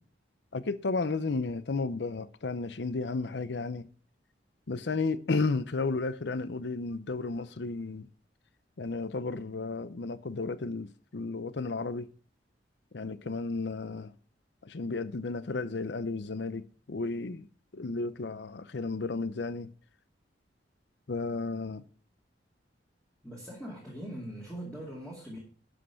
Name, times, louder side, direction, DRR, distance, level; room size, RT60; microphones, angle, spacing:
voice 1, 0.5-3.9 4.7-8.1 8.8-12.1 12.9-14.1 14.6-17.5 17.7-19.7 21.1-21.8, left 3 dB, 65° left, 0.6 m, -33 dB
voice 2, 23.2-25.4, right 1 dB, 5° left, 2.2 m, -41 dB
11.5 x 5.4 x 5.7 m
head